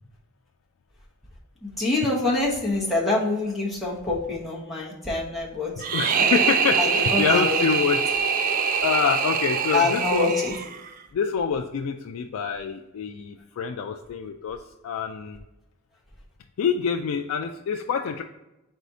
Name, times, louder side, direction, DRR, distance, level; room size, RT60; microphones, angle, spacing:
voice 1, 1.6-5.7 6.8-7.6 9.7-10.5, left 3 dB, ahead, -6 dB, 1.0 m, -25 dB
sound 1, 5.8-10.9, right 6 dB, 40° right, 0.3 m, -24 dB
voice 2, 5.9-8.1 8.8-10.3 11.1-14.6 14.8-15.4 16.6-18.2, left 6 dB, 75° left, 3 dB, 0.3 m, -26 dB
4.1 x 2.7 x 4.7 m, 0.95 s
head